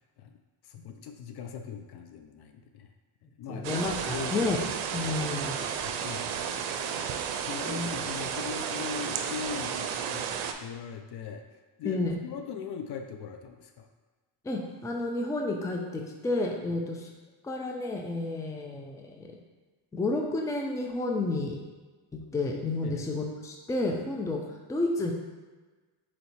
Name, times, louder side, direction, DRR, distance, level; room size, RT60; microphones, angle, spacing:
voice 1, 0.6-2.9 3.4-3.8 4.1-4.5 5.8-10.2 10.6-11.4 11.8-13.9 16.8-16.9 22.8-23.0, left 7 dB, 55° left, 6 dB, 0.5 m, -40 dB
voice 2, 3.5-4.6 4.9-5.7 7.7-7.9 11.8-12.1 14.4-17.1 17.4-19.3 19.9-21.6 22.3-24.4 24.7-25.1, left 2 dB, 5° left, 1 dB, 0.4 m, -31 dB
sound 1, 3.6-10.5, right 7 dB, 85° right, 0.6 m, -33 dB
4.4 x 2.9 x 4.1 m, 1.3 s
cardioid pair, 100°, 47 cm